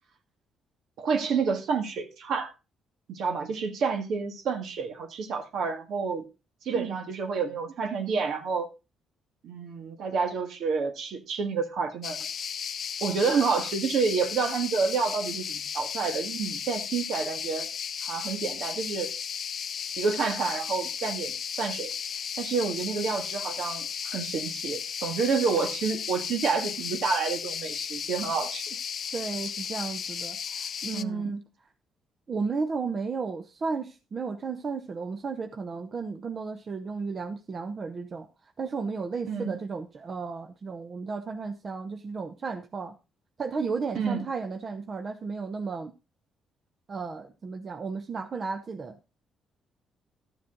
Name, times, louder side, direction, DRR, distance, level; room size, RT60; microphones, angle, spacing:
voice 1, 1.0-2.5 3.1-6.2 6.6-8.7 9.4-12.2 13.0-17.7 18.0-19.1 20.0-21.9 22.4-28.7 30.9-31.3 39.3-39.5 43.9-44.2, right 5 dB, 75° right, 1.8 m, -29 dB
sound 1, 12.0-31.0, left 7 dB, 55° left, 0.5 m, -35 dB
voice 2, 29.1-31.4 32.3-38.3 38.6-43.0 43.4-45.9 46.9-49.1, right 4 dB, 45° right, 0.8 m, -34 dB
12.5 x 7.3 x 3.8 m
cardioid pair, 90°, 0 cm